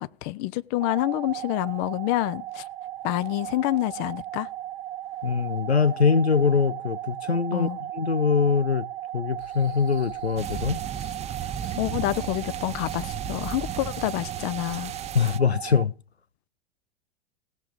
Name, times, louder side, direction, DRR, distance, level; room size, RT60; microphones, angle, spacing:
voice 1, 0.0-2.6 3.0-4.5 7.5-7.8 11.8-14.9, left 17 dB, 40° left, 0.9 m, -27 dB
sound 1, 0.8-15.8, right 13 dB, 70° right, 1.4 m, -36 dB
voice 2, 5.2-8.9 9.1-10.8 15.1-15.9, left 6 dB, 85° left, 0.8 m, -23 dB
sound 2, 9.4-15.1, left 5 dB, 65° left, 7.4 m, -49 dB
sound 3, 10.4-15.4, right 8 dB, 20° right, 0.8 m, -35 dB
16.5 x 7.1 x 7.9 m
figure-of-eight pair, 90°, 31 cm